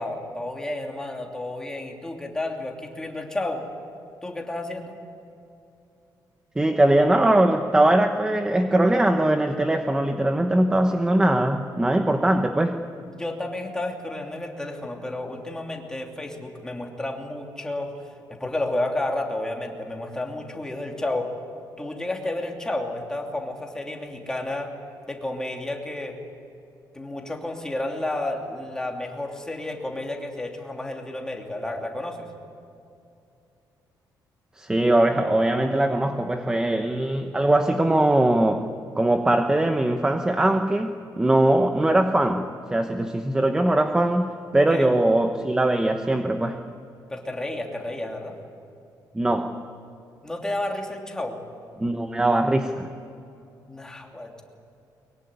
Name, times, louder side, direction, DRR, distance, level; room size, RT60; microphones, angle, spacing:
voice 1, 0.0-3.6 4.2-5.0 13.1-21.4 21.8-24.7 25.1-26.2 26.9-32.3 44.7-44.9 47.1-48.4 50.2-51.4 53.7-54.4, left 1 dB, 10° left, 1 dB, 2.9 m, -31 dB
voice 2, 6.5-12.8 34.6-38.7 38.9-46.6 49.1-49.6 51.8-52.9, right 1 dB, 10° right, 6 dB, 1.0 m, -21 dB
22.5 x 22.5 x 9.7 m, 2.7 s
cardioid pair, 160°, 8 cm